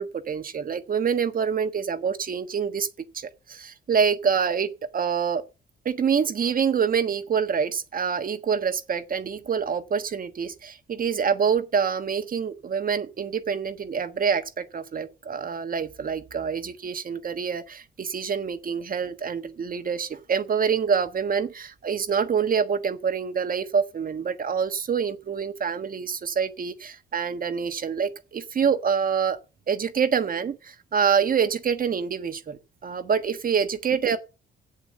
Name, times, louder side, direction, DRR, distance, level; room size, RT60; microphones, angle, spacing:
voice 1, 0.0-2.9 3.1-5.4 5.8-29.4 29.7-34.2, right 6 dB, 45° right, 1.3 m, -26 dB
8.2 x 7.7 x 7.5 m
cardioid pair, 90°, 20 cm